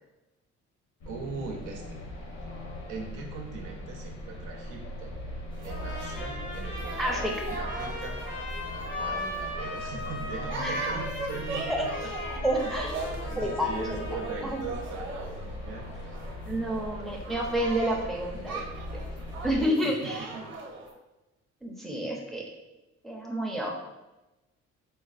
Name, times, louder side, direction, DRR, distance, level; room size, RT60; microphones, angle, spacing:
sound 1, 1.0-19.6, left 1 dB, 65° left, 0.9 m, -40 dB
voice 1, 1.1-2.0 2.9-5.1 5.6-8.2 8.9-12.1 12.6-12.8 13.3-15.8 19.8-20.5, right 4 dB, 85° right, 1 dB, 0.6 m, -40 dB
sound 2, 5.5-20.9, right 3 dB, 40° right, 0.8 m, -40 dB
Trumpet, 5.7-14.8, left 2 dB, 90° left, 0.8 m, -38 dB
voice 2, 7.0-7.3 10.6-10.8 11.7-11.8 12.3-13.0 13.4-14.0 14.4-14.6 16.5-18.6 18.9-19.0 19.4-20.3 21.6-22.4 23.0-23.7, equal, ahead, -2 dB, 0.5 m, -29 dB
4.0 x 2.0 x 2.4 m, 1.0 s
cardioid pair, 90°, 30 cm